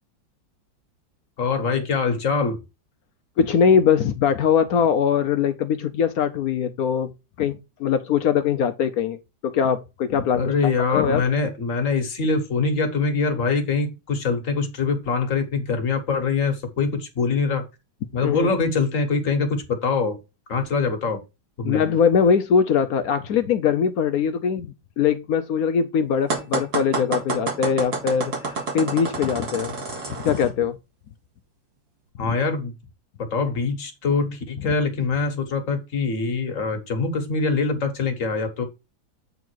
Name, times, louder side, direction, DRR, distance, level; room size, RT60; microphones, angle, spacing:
voice 1, 1.4-2.6 10.4-17.6 18.1-20.2 20.5-21.2 21.6-21.8 32.2-32.7 33.2-38.6, left 4 dB, 45° left, 1.6 m, -24 dB
voice 2, 3.4-7.1 7.4-9.2 9.4-10.5 10.9-11.2 18.2-18.5 21.6-28.3 28.7-29.8 30.2-30.8, left 7 dB, 70° left, 0.9 m, -21 dB
sound 1, 26.3-30.5, right 3 dB, 55° right, 2.4 m, -29 dB
8.4 x 3.9 x 4.5 m
omnidirectional pair, 2.1 m